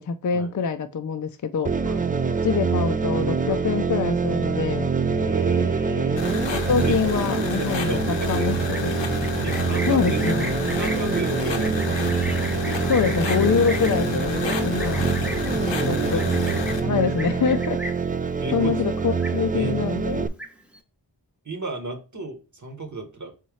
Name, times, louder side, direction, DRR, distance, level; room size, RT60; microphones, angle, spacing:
voice 1, 0.0-1.7 2.4-4.9 6.5-9.0 9.9-10.5 12.9-15.1 15.8-16.2 16.8-17.8 18.5-20.3, left 6 dB, 45° left, 0.5 m, -25 dB
sound 1, 1.6-20.3, right 5 dB, 20° right, 0.3 m, -25 dB
voice 2, 1.8-2.2 3.5-3.7 5.0-6.4 6.8-7.0 7.2-8.6 9.0-10.2 10.7-11.9 15.4-16.6 18.4-18.9 19.5-19.8 21.4-23.3, right 3 dB, 40° right, 1.0 m, -34 dB
sound 2, 6.2-16.8, left 5 dB, 85° left, 0.9 m, -30 dB
Livestock farm animals working animals, 8.6-18.2 18.5-18.8 19.1-19.8 20.1-20.8, equal, 5° right, 0.9 m, -37 dB
4.2 x 3.6 x 3.1 m
wide cardioid pair, 60°, 43 cm